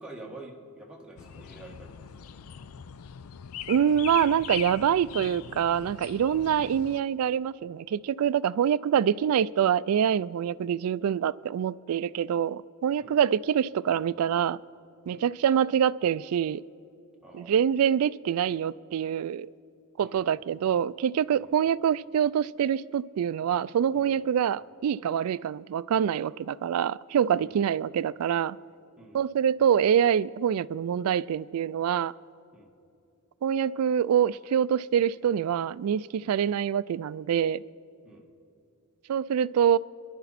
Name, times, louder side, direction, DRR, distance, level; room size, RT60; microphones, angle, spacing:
voice 1, 0.0-2.3 13.0-13.2 13.9-14.0 15.1-15.3 17.2-17.7 20.0-20.4 21.3-21.6 23.9-24.2 27.4-27.7 29.0-29.3 32.5-32.7 36.2-36.4 38.0-38.3, right 2 dB, 5° right, 1.7 m, -48 dB
sound 1, 1.2-7.0, left 9 dB, 80° left, 0.4 m, -41 dB
voice 2, 3.7-14.6 15.1-16.6 17.3-19.5 20.0-28.6 29.1-32.1 33.4-37.6 39.1-39.8, right 8 dB, 90° right, 0.3 m, -25 dB
27.5 x 11.0 x 4.1 m
head